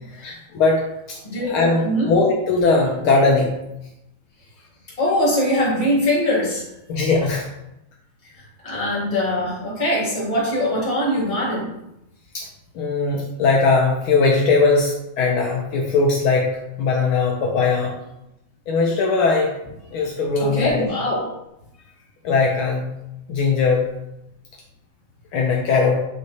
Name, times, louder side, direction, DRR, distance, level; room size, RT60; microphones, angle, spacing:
voice 1, 0.2-0.8 1.5-3.6 6.9-7.5 12.3-12.4 12.8-17.9 18.7-19.5 19.9-20.8 22.2-22.9 23.3-23.9 25.3-26.1, left 4 dB, 85° left, -1 dB, 1.1 m, -19 dB
voice 2, 1.2-2.1 5.0-6.6 8.6-11.7 20.3-21.2, equal, 15° left, -6 dB, 1.5 m, -22 dB
8.2 x 3.1 x 4.1 m, 0.86 s
omnidirectional pair, 3.3 m